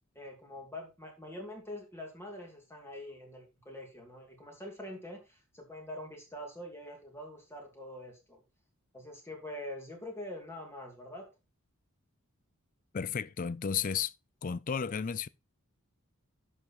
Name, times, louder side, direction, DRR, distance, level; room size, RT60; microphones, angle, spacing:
voice 1, 0.1-8.4 8.9-11.3, left 1 dB, 10° left, 2.9 m, -45 dB
voice 2, 12.9-14.1 14.4-15.3, left 7 dB, 40° left, 0.4 m, -33 dB
10.5 x 6.2 x 4.5 m
head